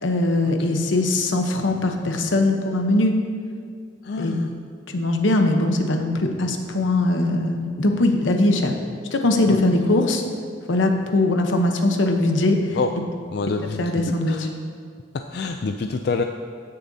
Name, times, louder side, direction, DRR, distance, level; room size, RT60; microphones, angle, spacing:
voice 1, 0.0-3.1 4.2-4.3 4.9-8.7 9.1-10.2 10.7-12.8 13.8-14.4, left 2 dB, 85° left, 4 dB, 0.9 m, -21 dB
voice 2, 4.0-4.5 9.5-9.6 12.7-12.9 13.3-13.8 14.3-14.5 15.1-16.2, left 4 dB, 55° left, 5 dB, 0.3 m, -27 dB
15.5 x 6.7 x 2.7 m, 2.1 s
head